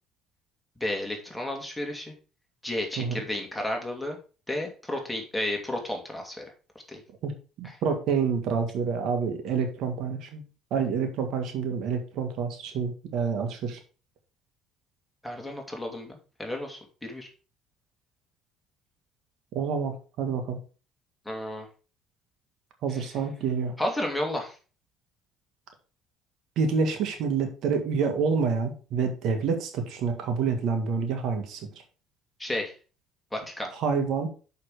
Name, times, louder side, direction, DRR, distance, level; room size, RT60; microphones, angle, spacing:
voice 1, 0.8-2.1 2.6-4.2 4.5-6.4 6.9-7.0 7.6-7.7 15.2-17.3 21.3-21.7 23.8-24.6 32.4-32.7 33.3-33.7, left 1 dB, 5° left, 1 dB, 2.5 m, -32 dB
voice 2, 7.6-10.4 10.7-13.8 19.5-20.6 22.8-23.7 26.6-31.7 33.8-34.3, right 5 dB, 65° right, 5 dB, 1.8 m, -28 dB
6.5 x 5.8 x 4.8 m, 0.35 s
supercardioid pair, 95°, 0 cm